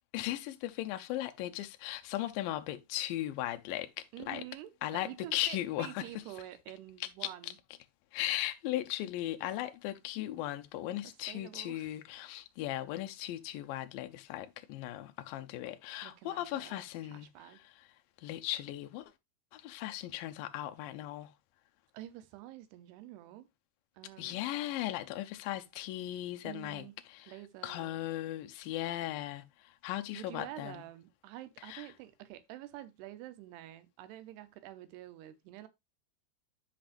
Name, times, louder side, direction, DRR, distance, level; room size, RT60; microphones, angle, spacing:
voice 1, 0.1-4.4 4.8-6.1 7.0-7.5 8.1-17.9 18.2-19.1 19.5-21.3 24.2-27.3 27.6-30.8 31.6-31.9, left 14 dB, 75° left, 2.1 m, -37 dB
voice 2, 4.1-4.7 5.0-7.6 11.0-11.9 16.0-17.6 21.9-23.5 24.0-24.5 26.4-27.0 27.2-28.1 30.2-35.7, right 14 dB, 85° right, 2.9 m, -48 dB
12.0 x 5.2 x 2.5 m
omnidirectional pair, 4.6 m